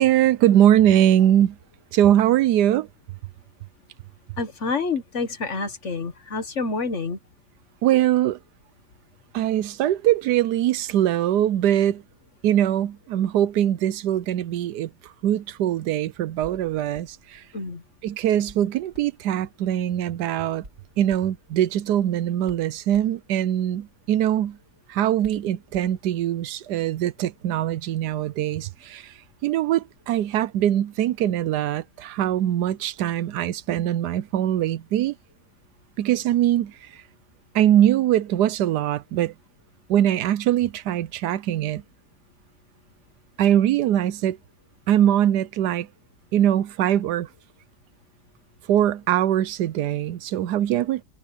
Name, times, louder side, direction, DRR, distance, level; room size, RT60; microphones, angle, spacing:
voice 1, 0.0-1.6 1.9-2.9 7.8-8.4 9.3-12.0 12.4-17.4 18.0-20.6 21.0-24.6 24.9-35.2 36.0-37.0 37.5-39.3 39.9-41.8 43.4-44.4 44.9-45.9 46.3-47.3 48.7-51.0, right 11 dB, 75° right, 1.2 m, -22 dB
voice 2, 4.4-7.2 17.5-17.8, left 4 dB, 45° left, 1.7 m, -28 dB
Hands, 17.9-26.4, right 1 dB, 40° right, 5.0 m, -53 dB
omnidirectional pair, 1.8 m